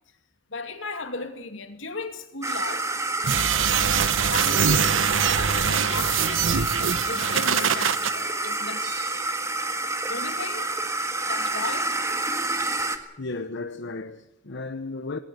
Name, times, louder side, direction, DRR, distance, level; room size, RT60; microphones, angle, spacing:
voice 1, 0.5-2.9 3.7-9.3 10.1-10.9 11.3-12.0, left 3 dB, 80° left, 2.5 m, -36 dB
sound 1, 2.4-13.0, right 2 dB, 15° right, 1.6 m, -28 dB
sound 2, 3.2-8.1, right 7 dB, 80° right, 1.0 m, -23 dB
sound 3, 8.8-9.8, right 11 dB, 50° right, 4.1 m, -44 dB
voice 2, 13.2-15.2, left 3 dB, 65° left, 1.0 m, -34 dB
19.5 x 18.5 x 8.2 m
head